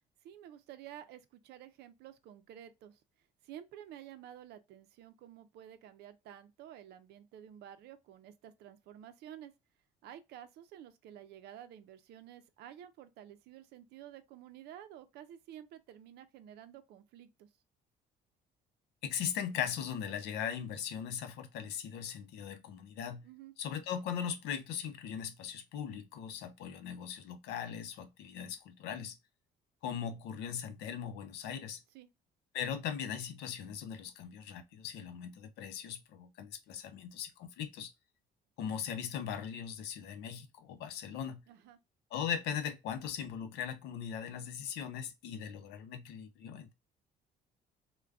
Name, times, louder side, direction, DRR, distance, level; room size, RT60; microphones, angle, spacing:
voice 1, 0.2-3.0 3.4-9.5 10.0-17.5 23.2-23.5 31.9-32.1 41.5-41.8, right 11 dB, 75° right, 0.5 m, -51 dB
voice 2, 19.0-23.3 23.6-29.2 29.8-31.8 32.5-37.9 38.6-41.4 42.1-46.7, left 8 dB, 85° left, 0.6 m, -39 dB
3.3 x 2.2 x 2.4 m
cardioid pair, 110°, 17 cm